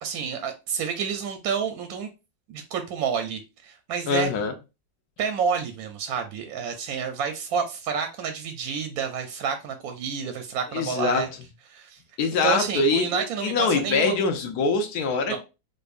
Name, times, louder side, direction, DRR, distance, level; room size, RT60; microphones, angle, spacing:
voice 1, 0.0-2.1 2.5-4.3 5.2-11.3 11.7-12.0 12.4-14.1 15.3-15.4, right 6 dB, 70° right, 0.9 m, -29 dB
voice 2, 4.1-4.5 10.7-11.2 12.2-15.4, left 4 dB, 65° left, 1.1 m, -24 dB
5.2 x 2.2 x 2.4 m
omnidirectional pair, 2.0 m